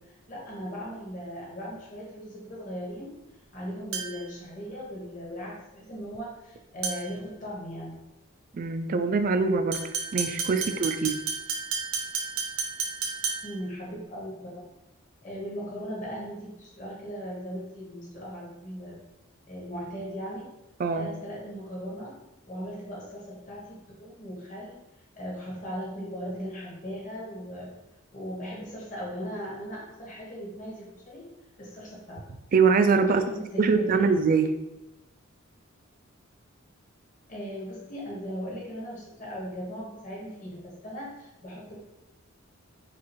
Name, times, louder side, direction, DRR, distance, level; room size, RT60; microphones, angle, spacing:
voice 1, 0.0-3.1 3.5-8.0 13.4-14.6 15.2-19.0 19.5-20.5 20.9-22.2 22.5-24.8 25.2-27.7 28.1-31.2 31.6-32.2 33.1-34.1 37.3-41.7, equal, 35° left, -5 dB, 1.4 m, -38 dB
sound 1, 3.9-4.4 6.8-7.2 9.7-13.7, right 5 dB, 80° right, 0.8 m, -32 dB
voice 2, 8.5-9.8 10.1-11.2 20.8-21.1 32.5-33.3 33.6-34.6, right 4 dB, 40° right, 9 dB, 0.3 m, -23 dB
6.1 x 2.4 x 3.0 m, 0.94 s
head